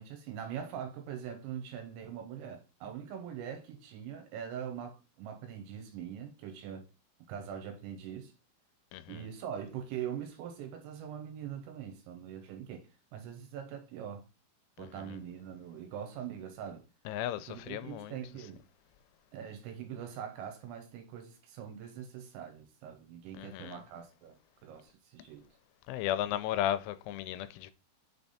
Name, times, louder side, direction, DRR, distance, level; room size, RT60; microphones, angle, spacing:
voice 1, 0.0-6.9 7.3-8.3 9.1-14.2 14.8-16.8 17.4-18.6 19.3-24.4 24.6-25.5, right 8 dB, 80° right, 3.3 m, -42 dB
voice 2, 8.9-9.2 14.8-15.2 17.1-18.2 23.3-23.8 25.9-27.7, left 11 dB, 85° left, 3.0 m, -35 dB
6.9 x 3.4 x 4.1 m
omnidirectional pair, 5.5 m